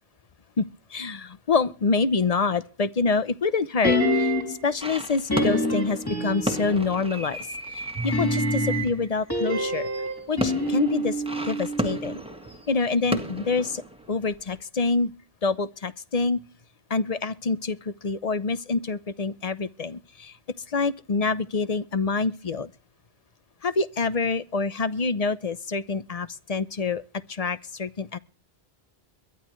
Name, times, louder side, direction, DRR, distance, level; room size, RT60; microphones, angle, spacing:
voice 1, 0.6-7.4 7.7-9.9 10.3-12.2 12.7-13.8 14.1-15.1 15.4-16.4 16.9-20.3 20.7-22.7 23.6-27.0 27.3-28.2, left 4 dB, 40° left, 0.8 m, -26 dB
sound 1, 3.8-4.7 5.3-6.9 7.9-12.2 12.4-12.5, equal, 20° left, 3.4 m, -26 dB
sound 2, 4.8-14.5, right 1 dB, 5° right, 1.7 m, -34 dB
22.5 x 12.0 x 3.1 m
omnidirectional pair, 1.0 m